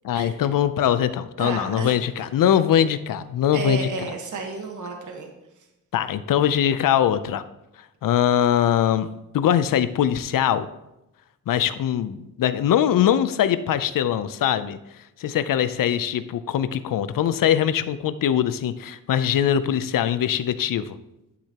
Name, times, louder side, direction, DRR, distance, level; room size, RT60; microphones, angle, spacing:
voice 1, 0.0-3.9 5.9-7.4 8.0-9.1 9.3-10.7 11.5-14.8 15.2-21.0, left 10 dB, 85° left, 13 dB, 0.6 m, -22 dB
voice 2, 1.4-1.9 3.5-5.3, right 4 dB, 65° right, 2 dB, 1.4 m, -31 dB
11.5 x 6.7 x 2.9 m, 0.91 s
wide cardioid pair, 140°, 33 cm